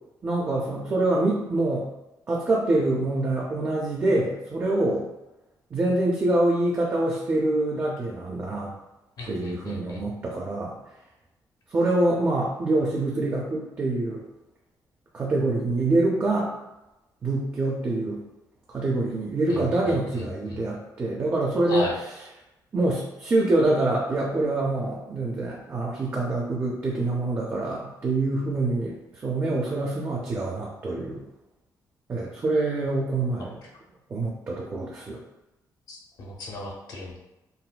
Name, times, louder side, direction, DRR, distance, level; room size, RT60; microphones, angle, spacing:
voice 1, 0.2-1.9 2.3-5.1 5.7-8.7 9.3-10.7 11.7-14.2 15.1-16.5 17.2-18.2 18.7-21.9 22.7-29.0 29.2-31.3 32.1-33.6 34.1-35.2, right 2 dB, 30° right, -3 dB, 0.5 m, -25 dB
voice 2, 9.2-10.1 19.5-19.6 20.2-20.6 21.7-22.0 35.9-37.2, left 2 dB, 65° left, -2 dB, 0.8 m, -36 dB
3.9 x 2.1 x 2.2 m, 0.97 s
cardioid pair, 110°, 7 cm